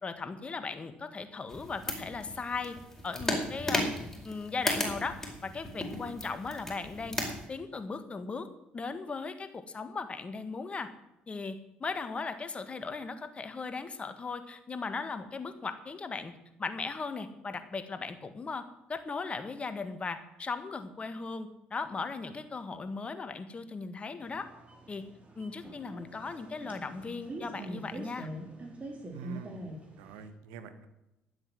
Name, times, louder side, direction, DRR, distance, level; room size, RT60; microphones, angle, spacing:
voice 1, 0.0-2.8 3.0-3.9 4.2-8.5 8.7-10.9 11.3-16.3 16.6-24.5 24.9-25.0 25.4-28.3, left 4 dB, 35° left, 9 dB, 1.7 m, -37 dB
sound 1, 1.5-7.5, left 1 dB, 10° left, 4.9 m, -36 dB
sound 2, 24.2-30.3, right 1 dB, 35° right, 3.7 m, -44 dB
voice 2, 29.1-29.6 30.0-30.9, right 7 dB, 85° right, 11 dB, 1.3 m, -46 dB
12.0 x 7.9 x 7.7 m, 0.92 s
supercardioid pair, 70°, 4 cm